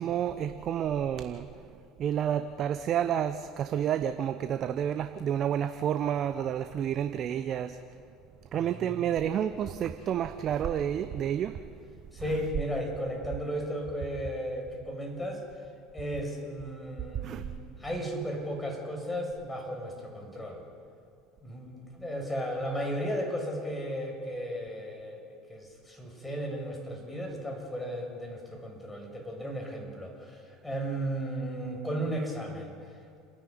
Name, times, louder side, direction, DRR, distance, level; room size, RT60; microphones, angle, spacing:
voice 1, 0.0-1.5 2.0-7.8 8.5-11.6 12.2-12.5 17.2-17.4, right 9 dB, 45° right, 10 dB, 0.8 m, -30 dB
voice 2, 8.5-9.0 12.1-15.4 15.9-17.4 17.8-20.6 21.4-32.7, equal, 10° left, 2 dB, 6.6 m, -35 dB
29.5 x 10.5 x 9.9 m, 2.5 s
hypercardioid pair, 70°, 0 cm